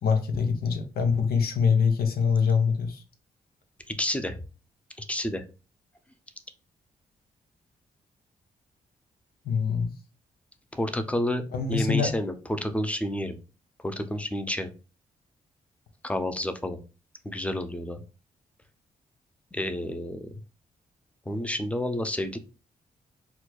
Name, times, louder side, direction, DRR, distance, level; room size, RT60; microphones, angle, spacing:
voice 1, 0.0-3.0 9.4-9.9 11.5-12.1, left 6 dB, 70° left, 0.7 m, -24 dB
voice 2, 3.9-4.3 5.0-5.4 10.7-13.4 13.8-14.7 16.0-16.8 17.2-18.0 19.5-20.3 21.3-22.4, left 1 dB, 10° left, 0.6 m, -30 dB
4.3 x 2.2 x 2.3 m
supercardioid pair, 50°, 17 cm